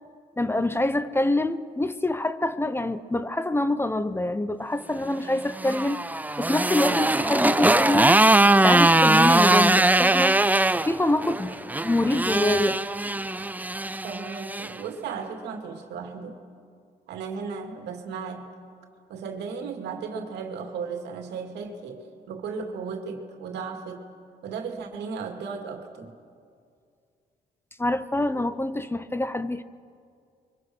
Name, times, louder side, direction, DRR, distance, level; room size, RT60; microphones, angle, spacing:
voice 1, 0.3-6.1 6.4-8.2 8.4-11.6 11.8-12.8 27.8-29.6, left 1 dB, 15° left, 0.9 m, -25 dB
Motorcycle, 5.3-14.7, right 2 dB, 10° right, 0.6 m, -21 dB
voice 2, 14.0-16.4 17.1-18.5 19.1-24.1 24.4-26.2, right 5 dB, 90° right, 2.6 m, -35 dB
29.0 x 24.0 x 6.3 m
cardioid pair, 75°, 17 cm